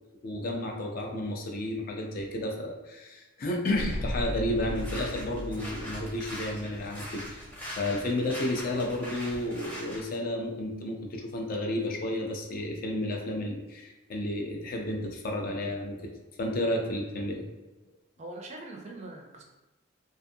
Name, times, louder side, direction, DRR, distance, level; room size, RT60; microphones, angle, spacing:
voice 1, 0.2-7.5 7.8-16.1 16.4-17.4, left 1 dB, 45° left, 1 dB, 0.4 m, -32 dB
sound 1, 3.7-8.2 8.6-8.7, equal, 90° right, 0.5 m, -37 dB
sound 2, 4.5-10.0, equal, 10° left, 0.7 m, -42 dB
voice 2, 18.2-19.4, right 2 dB, 35° right, 1 dB, 0.4 m, -43 dB
2.4 x 2.4 x 2.6 m, 1.1 s
head